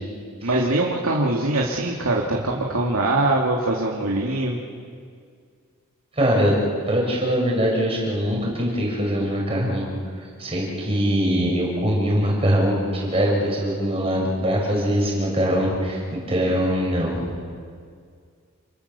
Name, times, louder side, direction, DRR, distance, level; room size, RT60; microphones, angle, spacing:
voice 1, 0.4-4.6, right 2 dB, 80° right, -1 dB, 2.5 m, -22 dB
voice 2, 6.2-6.5 6.9-9.8 10.4-17.3, equal, 25° right, -2 dB, 6.2 m, -22 dB
29.0 x 24.0 x 7.0 m, 2.1 s
head